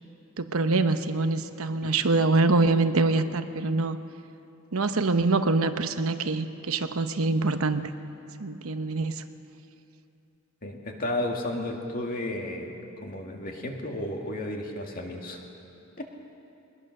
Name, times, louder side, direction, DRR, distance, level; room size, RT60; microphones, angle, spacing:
voice 1, 0.4-4.0 4.7-7.9 8.4-9.1, right 3 dB, 75° right, 9 dB, 0.9 m, -24 dB
voice 2, 10.6-12.8 13.0-15.4 16.0-16.1, left 1 dB, 40° left, 1 dB, 2.3 m, -33 dB
22.5 x 20.5 x 6.6 m, 2.7 s
head